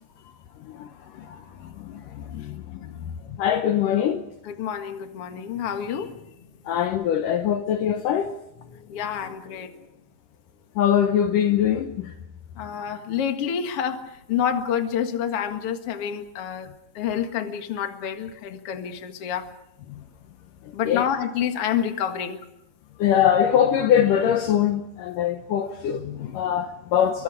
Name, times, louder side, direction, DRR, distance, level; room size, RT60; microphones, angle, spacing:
voice 1, 0.6-4.2 6.7-8.3 10.8-12.1 19.9-20.0 20.9-21.0 23.0-27.2, left 9 dB, 85° left, 1.8 m, -23 dB
voice 2, 4.4-6.3 7.4-7.6 8.7-9.8 12.5-16.7 16.9-19.5 20.7-22.4, left 8 dB, 55° left, 1.6 m, -28 dB
27.5 x 24.0 x 5.0 m
omnidirectional pair, 5.2 m